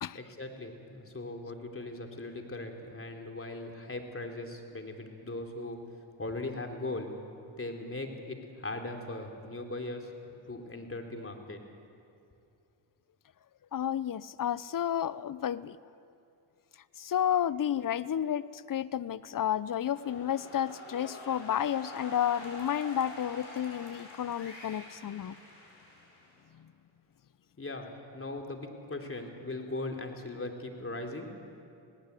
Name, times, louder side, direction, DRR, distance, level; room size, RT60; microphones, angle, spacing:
voice 1, 0.1-5.8 6.2-7.1 7.6-11.6 27.6-31.3, left 2 dB, 30° left, 3 dB, 3.5 m, -39 dB
voice 2, 13.7-15.8 17.0-25.4 26.6-26.7, left 10 dB, 45° left, 18 dB, 0.7 m, -31 dB
sound 1, 19.6-26.5, left 2 dB, 75° left, 7.3 m, -46 dB
19.0 x 18.0 x 8.3 m, 2.6 s
supercardioid pair, 55°, 47 cm